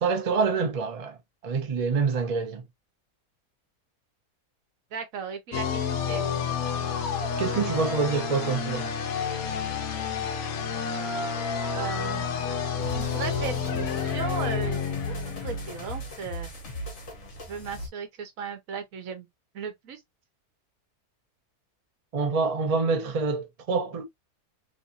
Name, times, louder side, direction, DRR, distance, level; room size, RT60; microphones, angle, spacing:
voice 1, 0.0-1.2 1.4-2.6 7.4-8.9 22.1-24.0, right 4 dB, 40° right, 0.5 m, -26 dB
voice 2, 4.9-6.2 11.7-12.3 12.9-16.5 17.5-19.3 19.5-20.0, right 6 dB, 70° right, 1.2 m, -36 dB
sound 1, 5.5-16.1, left 6 dB, 75° left, 1.1 m, -30 dB
sound 2, 12.8-17.9, equal, 55° left, 1.3 m, -37 dB
3.1 x 2.6 x 2.5 m
omnidirectional pair, 1.5 m